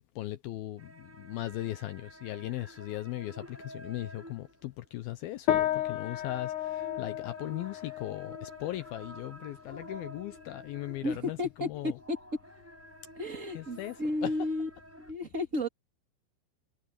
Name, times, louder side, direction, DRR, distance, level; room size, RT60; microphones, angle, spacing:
voice 1, 0.0-11.9 13.6-14.0 14.2-14.3, left 15 dB, 80° left, 2.2 m, -38 dB
sound 1, 0.8-11.4 11.7-15.1, equal, 5° right, 5.7 m, -51 dB
sound 2, 5.5-15.1, left 12 dB, 60° left, 2.3 m, -36 dB
voice 2, 11.0-12.2 13.1-14.7 15.0-15.7, left 1 dB, 20° right, 2.4 m, -33 dB
omnidirectional pair, 5.2 m